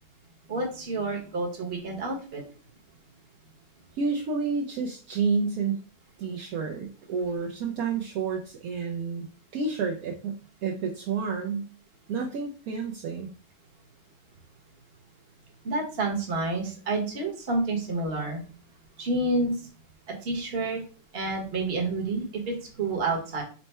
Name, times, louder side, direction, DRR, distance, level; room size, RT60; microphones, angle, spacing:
voice 1, 0.5-2.4 15.6-18.4 19.0-19.6 20.1-20.8 21.1-23.4, right 2 dB, 40° right, 0 dB, 1.0 m, -29 dB
voice 2, 3.9-5.8 6.2-9.3 9.5-11.7 12.1-13.3, right 5 dB, 70° right, 1 dB, 0.8 m, -30 dB
4.4 x 2.1 x 4.2 m, 0.39 s
omnidirectional pair, 2.0 m